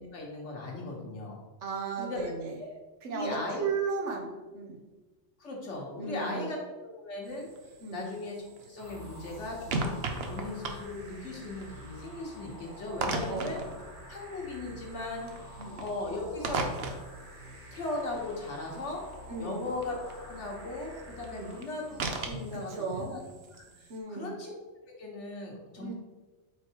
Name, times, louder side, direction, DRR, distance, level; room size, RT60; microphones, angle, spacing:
voice 1, 0.0-1.4 2.0-2.3 2.6-2.7 3.1-3.6 5.4-8.4 8.7-13.6 14.1-15.3 15.8-16.6 17.7-19.0 19.4-19.9 20.3-23.2 23.7-24.6 25.0-25.9, left 2 dB, 80° left, -1 dB, 1.6 m, -38 dB
voice 2, 1.6-2.5 3.0-4.8 6.0-6.5 7.8-8.0 13.3-13.5 15.6-15.8 19.3-19.7 21.3-21.5 22.5-23.2 23.9-24.4 25.8-25.9, right 5 dB, 85° right, 1 dB, 1.3 m, -35 dB
sound 1, 7.3-24.0, right 3 dB, 65° right, 0.9 m, -40 dB
sound 2, 8.8-22.3, equal, 45° right, 1.5 m, -48 dB
4.7 x 4.6 x 4.5 m, 1.2 s
omnidirectional pair, 1.2 m